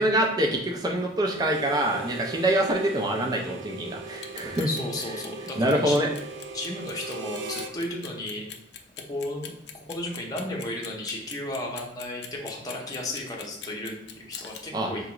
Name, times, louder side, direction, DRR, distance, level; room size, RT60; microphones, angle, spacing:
voice 1, 0.0-4.7 5.6-6.1 14.7-14.9, right 1 dB, 20° right, 0 dB, 0.4 m, -25 dB
Harmonica, 1.4-7.8, right 3 dB, 85° right, 0.4 m, -39 dB
Clock, 4.1-14.6, left 9 dB, 65° left, 0.4 m, -42 dB
voice 2, 4.7-6.0 6.5-8.5 9.1-9.5 9.9-15.1, left 1 dB, 20° left, -2 dB, 0.7 m, -34 dB
4.7 x 2.3 x 3.0 m, 0.80 s
head